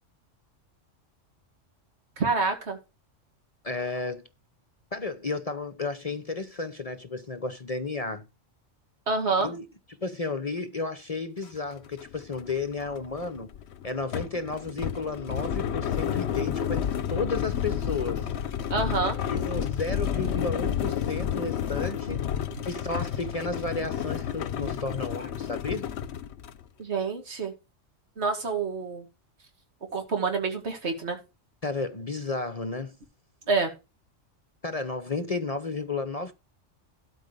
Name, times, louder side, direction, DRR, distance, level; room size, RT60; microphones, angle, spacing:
voice 1, 2.2-2.8 9.1-9.5 18.7-19.2 26.8-27.5 28.2-29.0 29.9-31.2 33.5-33.7, right 4 dB, 60° right, 2.4 m, -27 dB
voice 2, 3.6-4.2 4.9-8.3 9.4-9.6 10.0-13.5 13.8-18.3 19.3-22.2 22.6-25.8 31.6-33.0 34.6-36.3, left 3 dB, 35° left, 0.8 m, -32 dB
sound 1, 11.4-11.5 11.9-26.6, left 9 dB, 65° left, 0.9 m, -31 dB
12.5 x 4.6 x 6.6 m
omnidirectional pair, 1.3 m